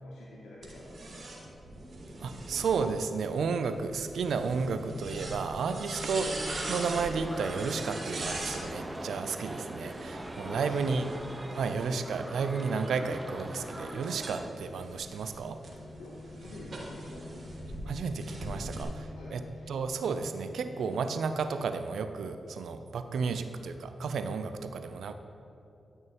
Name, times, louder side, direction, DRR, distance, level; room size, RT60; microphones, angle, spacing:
voice 1, 0.0-1.5 10.4-10.9 11.5-11.7 16.0-17.2 19.1-19.4 23.2-23.4, left 2 dB, 90° left, -5 dB, 0.9 m, -49 dB
sound 1, 0.6-8.6 9.8-12.1 12.7-17.8 18.2-18.8, right 2 dB, 65° right, 1.4 m, -42 dB
voice 2, 2.2-6.4 6.7-11.1 11.6-15.6 17.9-25.1, right 5 dB, 80° right, 9 dB, 0.4 m, -32 dB
sound 2, 2.8-21.7, left 3 dB, 60° left, 0.5 m, -50 dB
sound 3, 6.2-14.5, right 1 dB, 20° right, 0.7 m, -41 dB
10.5 x 6.4 x 3.0 m, 2.8 s
supercardioid pair, 40°, 0 cm